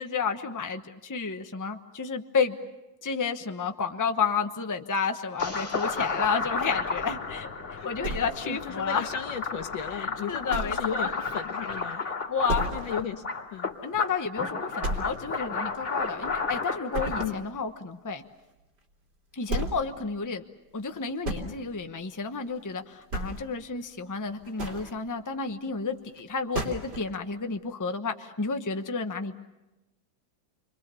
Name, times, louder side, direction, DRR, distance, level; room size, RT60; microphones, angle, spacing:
voice 1, 0.0-2.6 3.0-7.5 7.8-9.1 9.9-11.1 12.3-12.6 13.8-18.2 19.3-20.4 20.7-29.4, left 5 dB, 15° left, 6 dB, 0.7 m, -31 dB
sound 1, 5.4-17.2, left 4 dB, 40° left, 2.7 m, -32 dB
sound 2, 8.0-8.8 9.2-9.3 9.8-9.9 10.5-11.0 11.2-11.3 11.7-11.8 12.5-13.0 13.4-13.5 14.0-14.1 14.8-15.4 15.7-16.5 16.9-17.4 18.8-18.9 19.4-19.9 20.8-21.5 22.5-22.7 23.0-23.6 24.3-24.9 26.2-26.3 26.5-27.1, right 1 dB, 60° right, 4.0 m, -33 dB
voice 2, 8.4-12.0 12.7-13.2 13.5-13.7 17.2-17.4, left 8 dB, 90° left, 7 dB, 2.0 m, -35 dB
29.5 x 23.5 x 6.9 m, 1.0 s
omnidirectional pair, 2.0 m